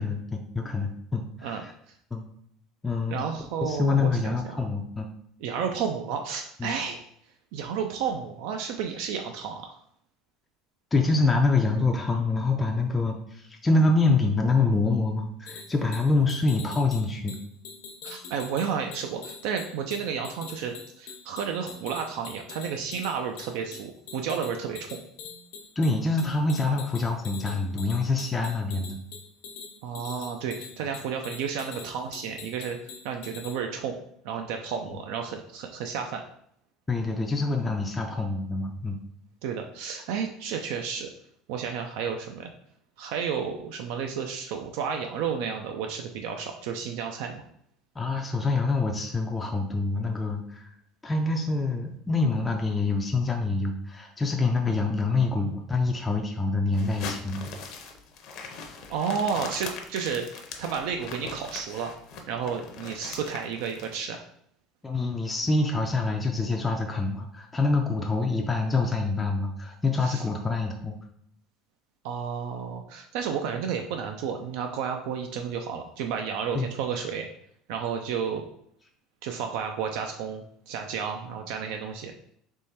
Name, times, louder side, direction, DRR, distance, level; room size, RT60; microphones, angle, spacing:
voice 1, 0.0-1.7 2.1-2.2 2.8-3.2 3.6-5.1 6.6-6.7 10.9-17.4 25.8-29.0 34.9-35.0 36.9-39.0 48.0-50.7 51.0-57.4 64.8-71.0 76.5-76.7, left 3 dB, 10° left, 1 dB, 0.4 m, -26 dB
voice 2, 3.1-4.3 5.4-7.0 7.5-9.7 18.0-25.0 29.8-32.8 33.0-33.9 34.2-36.2 39.4-41.1 41.5-42.5 43.0-47.4 58.9-61.9 62.3-64.2 70.0-70.2 72.0-77.3 77.7-78.5 79.2-82.1, right 7 dB, 70° right, 4 dB, 0.4 m, -32 dB
sound 1, 15.5-33.6, left 5 dB, 80° left, 0.9 m, -44 dB
sound 2, 56.7-64.0, left 4 dB, 50° left, 0.6 m, -40 dB
3.6 x 3.1 x 4.2 m, 0.68 s
cardioid pair, 165°, 0 cm